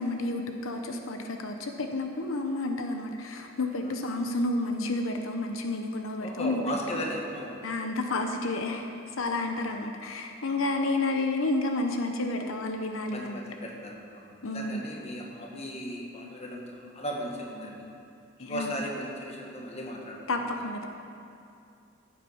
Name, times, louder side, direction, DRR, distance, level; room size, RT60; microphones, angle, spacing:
voice 1, 0.0-7.0 7.6-8.9 9.2-13.4 14.4-14.8 18.4-18.8 20.3-20.9, left 2 dB, 85° left, 4 dB, 0.8 m, -30 dB
voice 2, 6.2-7.6 9.4-9.6 13.1-17.8 18.4-20.5, equal, 30° left, -1 dB, 1.6 m, -37 dB
14.0 x 8.3 x 5.7 m, 2.5 s
head